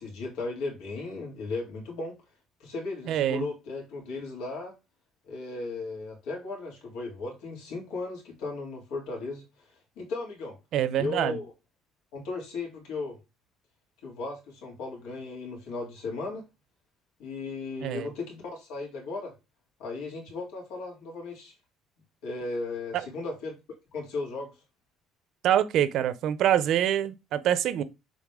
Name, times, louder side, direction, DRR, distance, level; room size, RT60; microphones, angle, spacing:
voice 1, 0.0-2.2 2.6-4.7 5.3-9.4 10.0-10.6 11.0-11.5 12.1-13.2 14.0-16.5 17.2-19.3 19.8-21.5 22.2-23.6 23.9-24.5, left 3 dB, 90° left, 3.3 m, -36 dB
voice 2, 3.1-3.5 10.7-11.4 17.8-18.1 22.9-23.1 25.4-27.8, right 10 dB, 50° right, 0.6 m, -25 dB
7.1 x 4.2 x 3.6 m
cardioid pair, 175°, 0 cm